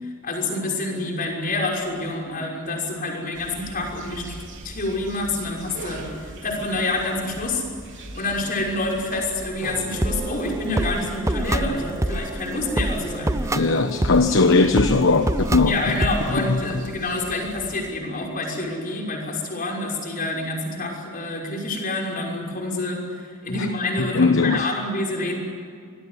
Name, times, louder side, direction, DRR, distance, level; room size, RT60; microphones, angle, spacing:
voice 1, 0.0-4.2 4.5-7.6 8.1-13.6 14.1-14.2 15.7-25.4, left 2 dB, 40° left, 0 dB, 6.0 m, -27 dB
sound 1, 3.3-17.9, right 1 dB, 60° right, 3.8 m, -41 dB
sound 2, 9.6-16.3, right 1 dB, 15° right, 0.7 m, -27 dB
voice 2, 13.5-15.8 16.4-16.6 23.6-23.7 24.1-24.7, left 3 dB, 65° left, 7 dB, 1.1 m, -19 dB
26.0 x 20.5 x 9.8 m, 2.2 s
head